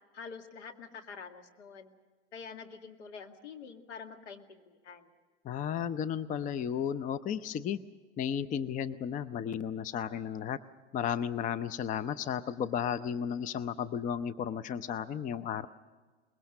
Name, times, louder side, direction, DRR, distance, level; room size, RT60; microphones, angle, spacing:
voice 1, 0.1-1.9 2.3-5.1, left 5 dB, 70° left, 5 dB, 2.2 m, -46 dB
voice 2, 5.4-7.8 8.2-10.6 10.9-15.7, left 8 dB, 20° left, 13 dB, 0.6 m, -34 dB
23.5 x 21.0 x 6.5 m, 1.4 s
hypercardioid pair, 90°, 36 cm